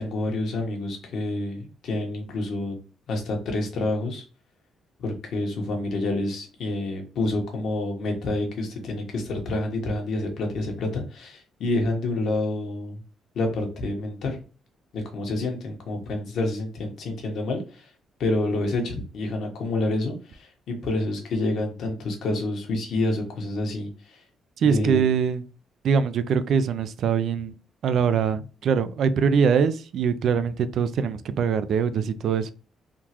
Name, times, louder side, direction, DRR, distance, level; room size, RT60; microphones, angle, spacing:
voice 1, 0.0-2.8 3.1-4.2 5.0-13.0 13.3-14.4 14.9-17.9 18.2-24.2 24.6-25.0, left 2 dB, 70° left, 1.1 m, -28 dB
voice 2, 24.6-25.4 25.8-27.5 27.8-32.5, right 6 dB, 65° right, 0.3 m, -23 dB
3.6 x 2.4 x 2.9 m
cardioid pair, 90°, 0 cm